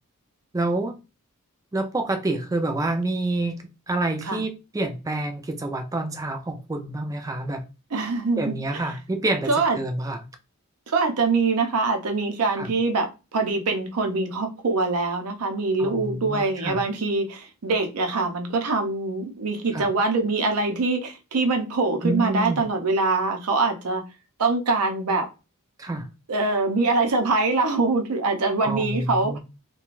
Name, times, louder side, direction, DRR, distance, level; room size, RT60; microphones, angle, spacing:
voice 1, 0.5-1.0 1.7-7.6 8.4-10.2 12.6-12.7 15.8-16.8 19.7-19.9 22.0-22.6 25.8-26.1 28.6-29.4, right 2 dB, 15° right, 0.3 m, -28 dB
voice 2, 7.9-8.8 9.5-9.8 10.9-24.0 24.4-25.3 26.3-29.4, right 3 dB, 85° right, 0.6 m, -24 dB
2.5 x 2.2 x 3.0 m
head